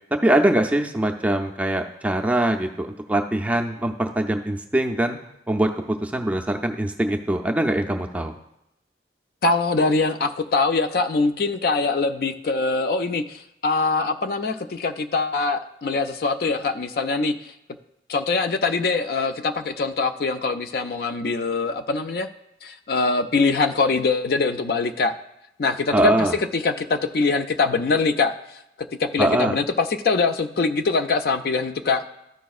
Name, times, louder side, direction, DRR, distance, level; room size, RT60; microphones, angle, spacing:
voice 1, 0.1-5.2 5.5-8.3 25.9-26.4 29.2-29.6, right 1 dB, 10° right, 3 dB, 0.4 m, -22 dB
voice 2, 9.4-17.5 18.1-22.3 22.6-25.1 25.6-28.3 29.0-32.0, left 3 dB, 55° left, 8 dB, 0.4 m, -23 dB
12.5 x 5.0 x 2.4 m, 0.84 s
head